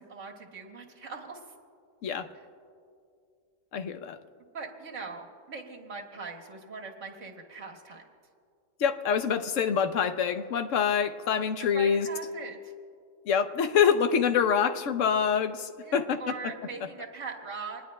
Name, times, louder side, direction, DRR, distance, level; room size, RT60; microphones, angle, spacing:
voice 1, 0.0-1.4 2.3-2.5 4.5-8.0 11.7-12.6 15.8-17.8, right 4 dB, 80° right, 0 dB, 2.0 m, -41 dB
voice 2, 3.7-4.2 8.8-12.1 13.3-16.4, left 7 dB, 85° left, 9 dB, 1.1 m, -26 dB
26.5 x 20.0 x 2.2 m, 2.3 s
omnidirectional pair, 1.3 m